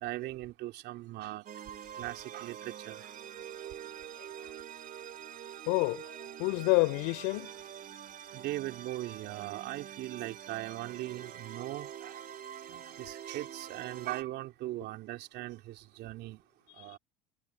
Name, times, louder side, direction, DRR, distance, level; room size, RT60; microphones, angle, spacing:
voice 1, 0.0-1.4 2.0-3.1 8.3-12.2 12.7-16.4 16.8-17.0, right 16 dB, 60° right, 2.9 m, -39 dB
sound 1, 1.5-14.2, right 9 dB, 45° right, 3.8 m, -45 dB
voice 2, 4.2-4.5 5.7-6.1 6.4-7.5 16.8-16.9, left 32 dB, 75° left, 4.0 m, -29 dB
hypercardioid pair, 85°, 19 cm